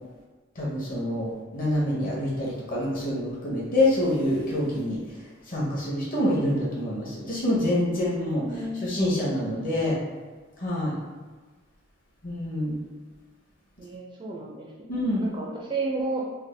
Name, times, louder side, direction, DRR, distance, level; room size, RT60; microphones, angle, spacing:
voice 1, 0.6-5.0 5.5-8.4 8.8-10.0 10.6-11.0 12.2-12.8 14.9-15.2, left 1 dB, 45° left, -5 dB, 0.9 m, -26 dB
voice 2, 8.4-9.0 13.8-16.4, right 2 dB, 25° right, -3 dB, 0.4 m, -33 dB
3.4 x 2.1 x 3.2 m, 1.4 s
head